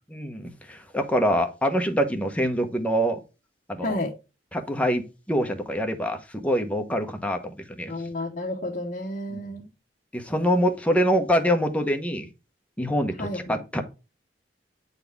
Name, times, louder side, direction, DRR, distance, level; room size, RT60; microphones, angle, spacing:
voice 1, 0.1-3.2 3.7-4.0 4.5-5.0 5.3-7.9 9.3-9.6 10.1-12.3 12.8-13.8, equal, 10° left, 5 dB, 0.9 m, -25 dB
voice 2, 3.8-4.1 7.9-9.7 13.2-13.6, left 1 dB, 45° left, -1 dB, 1.1 m, -31 dB
8.3 x 4.1 x 3.5 m, 0.29 s
head